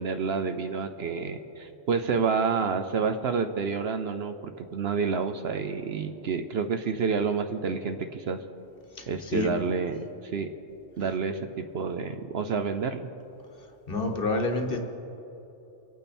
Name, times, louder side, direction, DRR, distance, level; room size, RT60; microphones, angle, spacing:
voice 1, 0.0-8.4 9.1-10.0 10.3-10.5 11.0-13.1, right 5 dB, 60° right, 8 dB, 0.8 m, -29 dB
voice 2, 13.9-14.8, left 3 dB, 50° left, 3 dB, 1.4 m, -27 dB
25.0 x 8.9 x 4.3 m, 3.0 s
omnidirectional pair, 1.3 m